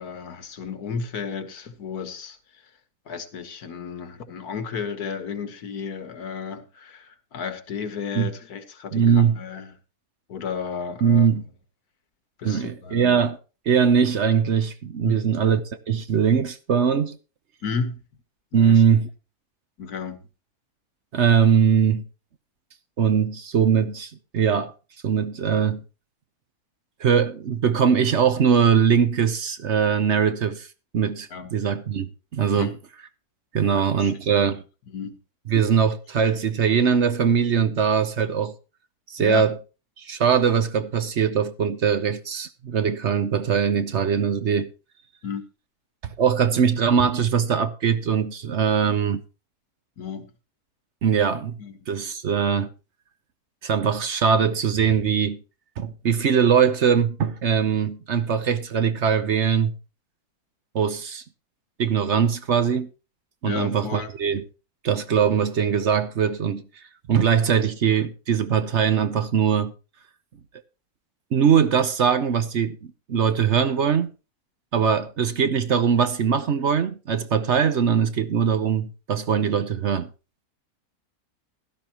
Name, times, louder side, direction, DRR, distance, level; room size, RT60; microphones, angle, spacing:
voice 1, 0.0-2.4 3.1-9.8 10.3-11.4 12.4-13.2 15.0-15.2 17.6-18.0 18.5-18.8 19.8-20.3 31.3-31.5 32.6-32.8 33.6-34.1 34.4-34.6 34.9-35.2 39.2-39.4 45.2-45.4 50.0-50.3 51.6-51.8 63.5-64.1, left 5 dB, 80° left, 1.8 m, -33 dB
voice 2, 8.9-9.4 11.0-11.4 12.4-13.4 13.7-15.6 15.9-17.2 18.5-19.1 21.1-22.0 23.0-24.7 25.0-25.8 27.0-30.7 30.9-32.7 33.5-34.6 35.5-38.5 39.1-39.6 40.0-44.7 46.0-49.2 51.0-51.5 51.9-52.7 53.6-55.4 55.8-59.7 60.7-61.2 61.8-62.9 63.4-64.4 64.8-66.6 67.1-69.7 71.3-72.8 73.1-74.1 74.7-80.1, right 7 dB, 55° right, 1.0 m, -21 dB
16.0 x 12.0 x 2.9 m
omnidirectional pair, 1.6 m